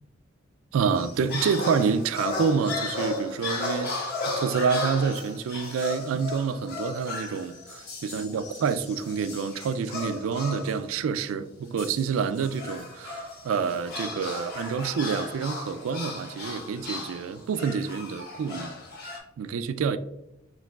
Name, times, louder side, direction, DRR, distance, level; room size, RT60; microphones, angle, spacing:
voice 1, 0.7-3.9 4.3-18.7 19.4-20.0, right 6 dB, 70° right, 0.3 m, -28 dB
sound 1, 0.9-10.8 11.8-19.2, left 3 dB, 50° left, 1.1 m, -35 dB
4.6 x 3.7 x 2.3 m
head